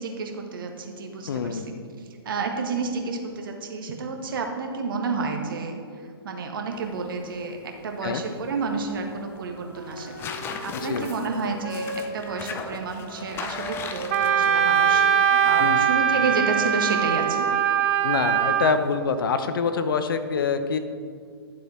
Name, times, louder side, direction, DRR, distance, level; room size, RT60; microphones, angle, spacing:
voice 1, 0.0-5.8 6.2-7.6 7.8-10.1 10.6-17.5, right 4 dB, 55° right, 3 dB, 1.5 m, -30 dB
voice 2, 1.3-1.7 8.0-8.2 10.8-11.1 15.6-15.8 18.0-20.8, left 5 dB, 55° left, 9 dB, 0.8 m, -25 dB
sound 1, 6.7-19.0, left 5 dB, 15° left, 0.6 m, -41 dB
Wind instrument woodwind instrument, 9.5-16.9, right 1 dB, 75° right, 2.5 m, -38 dB
Wind instrument woodwind instrument 2, 14.1-18.7, right 8 dB, 35° right, 0.7 m, -21 dB
12.0 x 7.3 x 4.3 m, 2.1 s
figure-of-eight pair, 125°, 13 cm